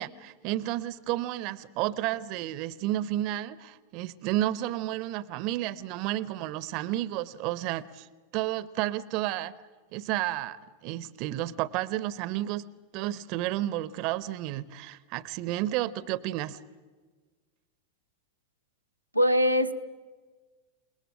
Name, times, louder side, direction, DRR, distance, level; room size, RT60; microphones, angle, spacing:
voice 1, 0.0-8.1 8.3-9.5 9.9-12.6 12.9-16.6, right 14 dB, 45° right, 19 dB, 0.8 m, -31 dB
voice 2, 19.1-19.7, equal, 90° right, 3 dB, 0.9 m, -22 dB
28.5 x 20.0 x 8.8 m, 1.4 s
figure-of-eight pair, 90°, 0 cm